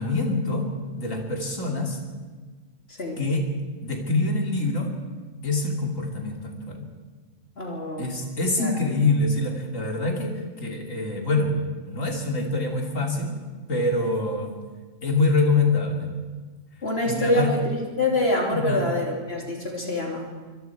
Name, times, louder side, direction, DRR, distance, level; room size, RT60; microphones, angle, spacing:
voice 1, 0.0-2.0 3.2-3.5 3.8-5.0 5.4-6.9 8.0-11.6 11.9-13.3 13.7-14.5 15.0-16.1 17.0-17.6 18.5-18.9, left 2 dB, 70° left, 1 dB, 3.3 m, -25 dB
voice 2, 7.6-8.1 8.6-8.7 16.8-20.3, left 1 dB, 45° left, 0 dB, 3.5 m, -25 dB
26.0 x 21.5 x 4.8 m, 1.4 s
omnidirectional pair, 1.4 m